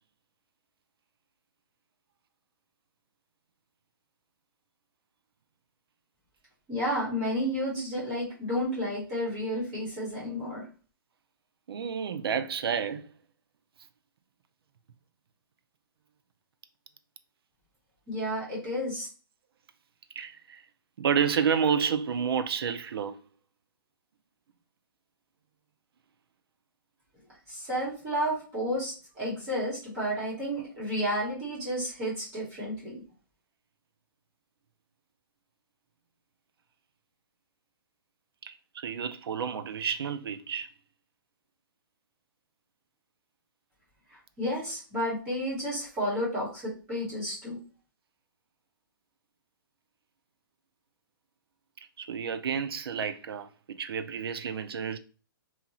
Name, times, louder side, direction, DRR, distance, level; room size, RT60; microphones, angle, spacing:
voice 1, 6.7-10.6 18.1-19.1 27.5-33.0 44.4-47.6, equal, 15° right, 1.1 m, -31 dB
voice 2, 11.7-13.1 20.2-20.6 21.0-23.2 38.4-40.7 52.0-55.0, right 7 dB, 85° right, 0.4 m, -30 dB
2.8 x 2.3 x 2.9 m
hypercardioid pair, 180°, 12 cm